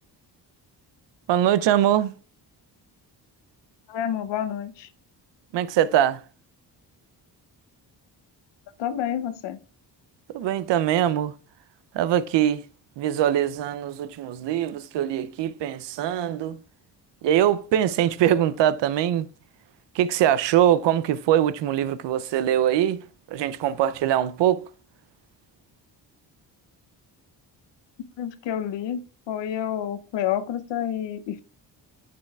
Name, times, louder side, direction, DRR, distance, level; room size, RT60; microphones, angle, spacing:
voice 1, 1.3-2.1 5.5-6.2 10.3-11.3 11.9-12.6 13.0-16.6 17.2-19.3 19.9-23.0 23.3-24.7, right 11 dB, 80° right, 0.6 m, -22 dB
voice 2, 3.9-4.9 8.8-9.6 28.2-29.0 29.3-31.4, left 10 dB, 85° left, 0.7 m, -29 dB
9.7 x 6.9 x 2.3 m
cardioid pair, 75°, 42 cm